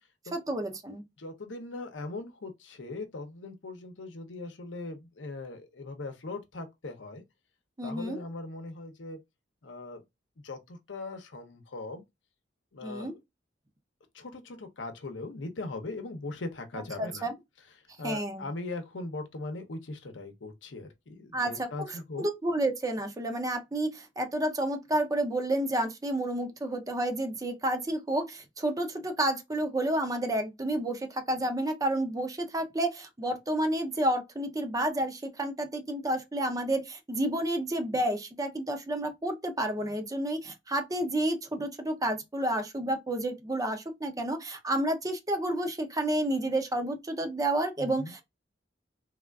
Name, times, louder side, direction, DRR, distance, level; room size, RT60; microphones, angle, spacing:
voice 1, 0.3-1.0 7.8-8.2 12.8-13.1 17.0-17.3 18.0-18.4 21.3-48.2, right 1 dB, 20° right, 0.5 m, -30 dB
voice 2, 1.2-7.2 7.8-9.2 9.6-10.0 10.4-12.0 12.7-13.1 14.1-17.3 18.0-22.3 47.8-48.1, left 2 dB, 75° left, 0.7 m, -40 dB
3.4 x 2.4 x 2.2 m
head